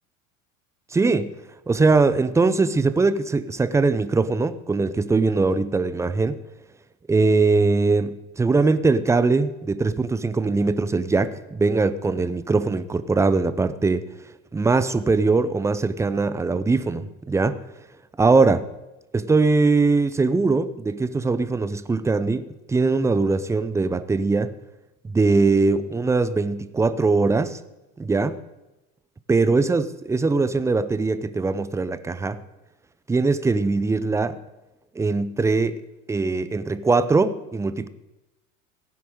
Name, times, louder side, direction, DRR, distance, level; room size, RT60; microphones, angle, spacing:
voice 1, 0.9-1.3 1.7-6.4 7.1-14.1 14.5-17.6 18.2-18.7 19.1-24.5 25.0-27.6 28.0-28.4 29.3-32.4 33.1-34.4 35.0-35.8 36.1-37.9, right 3 dB, 5° right, 14 dB, 0.5 m, -21 dB
17.0 x 10.0 x 3.7 m, 1.0 s
figure-of-eight pair, 80°, 43 cm